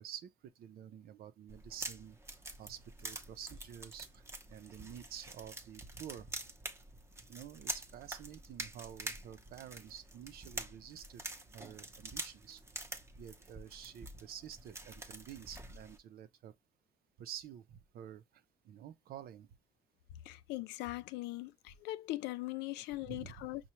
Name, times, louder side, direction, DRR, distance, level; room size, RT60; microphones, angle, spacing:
voice 1, 0.0-2.2 2.6-4.2 4.5-6.3 7.3-11.2 11.5-12.6 13.2-16.5 17.2-19.5 23.0-23.5, right 10 dB, 65° right, 0.7 m, -49 dB
sound 1, 1.5-16.0, right 2 dB, 15° right, 0.8 m, -46 dB
voice 2, 20.3-23.7, left 17 dB, 85° left, 0.4 m, -40 dB
5.6 x 2.3 x 3.0 m
cardioid pair, 110°, 17 cm